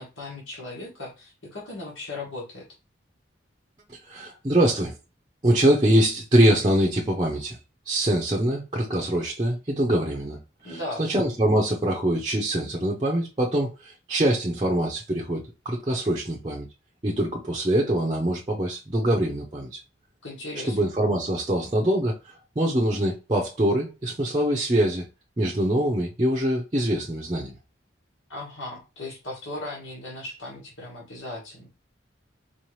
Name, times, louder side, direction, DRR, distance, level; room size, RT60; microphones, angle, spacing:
voice 1, 0.0-2.6 10.6-11.1 20.2-20.8 28.3-31.7, left 2 dB, 90° left, 1.5 m, -37 dB
voice 2, 4.1-4.9 5.4-7.6 7.9-10.4 10.6-16.7 17.0-19.8 20.6-22.2 22.6-25.0 25.4-27.5, right 1 dB, 25° right, 0.6 m, -24 dB
4.5 x 2.9 x 3.1 m
head